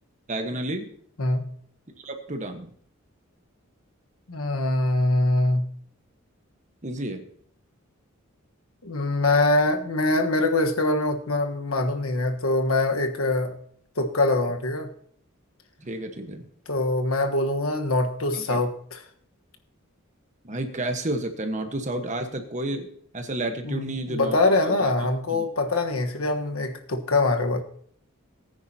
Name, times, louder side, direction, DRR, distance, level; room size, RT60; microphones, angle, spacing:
voice 1, 0.3-0.9 2.0-2.7 6.8-7.3 15.8-16.5 18.3-18.6 20.4-22.9 23.1-24.9 25.3-25.5, right 1 dB, 35° right, 5 dB, 1.3 m, -31 dB
voice 2, 4.3-5.6 8.8-13.6 14.0-14.9 16.7-18.7 23.6-27.6, left 2 dB, 80° left, 5 dB, 1.4 m, -23 dB
19.5 x 9.5 x 2.9 m, 0.62 s
head